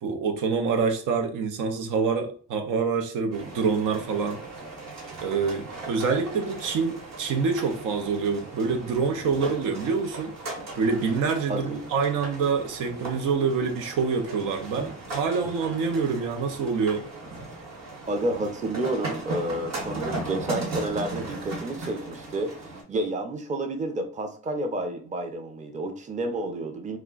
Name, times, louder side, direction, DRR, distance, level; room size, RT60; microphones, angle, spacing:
voice 1, 0.0-4.4 5.2-10.3 10.8-17.0, right 5 dB, 85° right, 0.6 m, -26 dB
sound 1, 3.3-22.8, right 2 dB, 60° right, 1.1 m, -38 dB
voice 2, 11.5-11.8 18.1-27.0, right 1 dB, 25° right, 0.5 m, -30 dB
2.4 x 2.2 x 3.7 m
cardioid pair, 90°, 30 cm